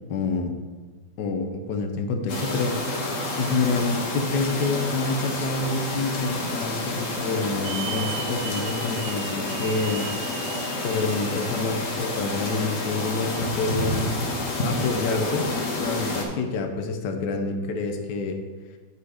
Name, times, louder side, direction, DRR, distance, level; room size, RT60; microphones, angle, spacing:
voice 1, 0.1-0.5 1.2-10.1 10.8-14.3 14.6-15.5 15.8-18.4, left 3 dB, 70° left, 5 dB, 1.4 m, -27 dB
sound 1, 2.3-16.2, left 2 dB, 50° left, 1.4 m, -29 dB
Hiss / Alarm, 7.6-12.4, right 10 dB, 70° right, 1.0 m, -39 dB
9.2 x 4.2 x 4.9 m, 1.4 s
omnidirectional pair, 2.0 m